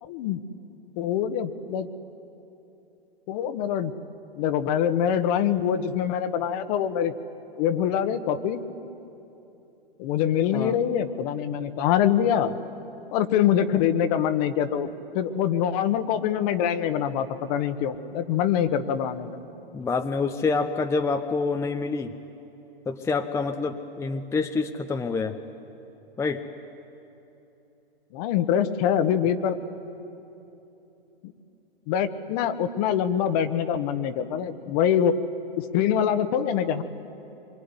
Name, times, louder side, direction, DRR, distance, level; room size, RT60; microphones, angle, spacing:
voice 1, 0.0-0.4 1.0-1.9 3.3-3.9 4.3-7.1 7.6-8.6 10.0-12.5 13.1-19.4 28.1-29.6 31.9-35.2 35.6-36.8, left 9 dB, 40° left, 10 dB, 1.5 m, -24 dB
voice 2, 19.7-22.1 22.9-25.4 26.2-26.4, left 4 dB, 10° left, 5 dB, 0.9 m, -27 dB
24.5 x 23.5 x 9.8 m, 3.0 s
hypercardioid pair, 115°, 29 cm